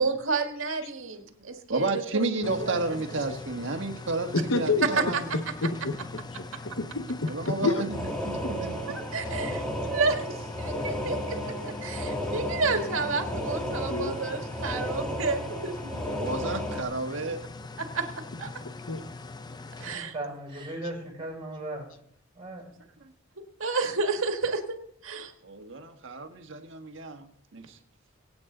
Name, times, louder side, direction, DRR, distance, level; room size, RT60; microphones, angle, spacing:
voice 1, 0.0-2.0 2.4-2.8 5.0-5.2 8.9-16.0 17.8-18.1 18.4-18.5 19.8-20.1 23.6-24.8 25.0-25.3, right 4 dB, 85° right, 1.8 m, -30 dB
voice 2, 1.7-5.3 7.2-7.9 8.2-8.7 13.0-13.4 16.1-17.4 25.4-27.8, right 2 dB, 65° right, 1.6 m, -32 dB
sound 1, 2.4-19.9, left 3 dB, 20° left, 0.5 m, -42 dB
voice 3, 4.3-4.9 5.3-6.0 6.3-6.5 6.8-7.8 8.4-8.5 13.9-14.2 18.9-19.0, left 3 dB, 80° left, 1.2 m, -28 dB
sound 2, 7.9-16.8, equal, 5° left, 1.8 m, -33 dB
voice 4, 19.8-21.9 22.3-22.9, right 1 dB, 25° right, 6.1 m, -37 dB
23.5 x 8.7 x 3.9 m
head